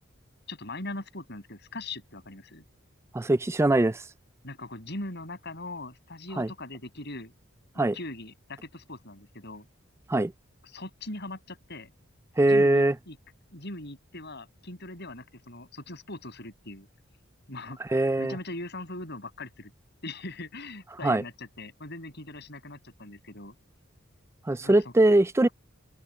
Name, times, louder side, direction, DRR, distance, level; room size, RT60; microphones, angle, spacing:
voice 1, 0.5-2.6 4.4-7.3 7.7-9.7 10.6-11.9 12.4-13.2 13.5-16.9 17.5-19.7 20.0-23.6 24.6-24.7, left 2 dB, 55° left, 7.6 m, -40 dB
voice 2, 3.1-4.0 6.4-6.5 7.8-8.0 10.1-10.3 12.4-12.9 17.8-18.4 21.0-21.2 24.5-25.5, right 2 dB, 15° right, 0.4 m, -22 dB
head